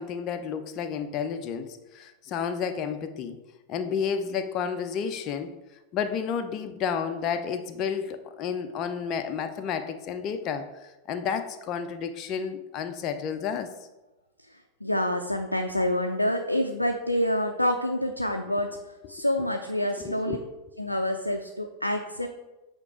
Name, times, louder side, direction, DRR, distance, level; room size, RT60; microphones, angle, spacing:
voice 1, 0.0-3.4 3.7-5.5 5.9-13.7 20.0-20.4, left 7 dB, 35° left, 8 dB, 0.5 m, -31 dB
voice 2, 14.5-18.8 19.1-20.4 20.8-22.3, left 1 dB, 85° left, 4 dB, 0.4 m, -27 dB
8.2 x 2.9 x 4.7 m, 1.0 s
figure-of-eight pair, 90°, 0 cm